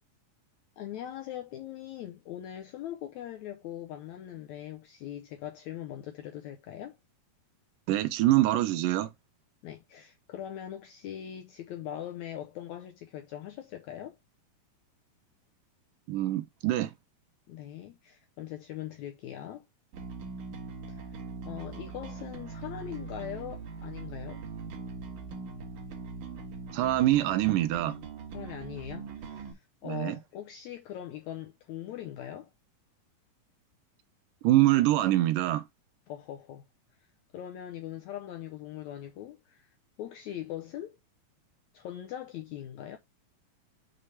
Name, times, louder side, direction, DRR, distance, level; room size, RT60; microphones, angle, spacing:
voice 1, 0.8-7.0 9.6-14.2 17.5-19.6 20.9-21.2 21.4-24.4 28.3-32.5 36.1-36.7 37.0-41.0 41.7-43.0, left 11 dB, 80° left, 1.6 m, -41 dB
voice 2, 7.9-9.1 16.1-16.9 26.7-28.0 29.8-30.2 34.4-35.6, right 15 dB, 80° right, 2.2 m, -25 dB
Bass guitar, 19.9-29.5, right 4 dB, 65° right, 2.6 m, -41 dB
6.5 x 3.2 x 5.6 m
omnidirectional pair, 4.0 m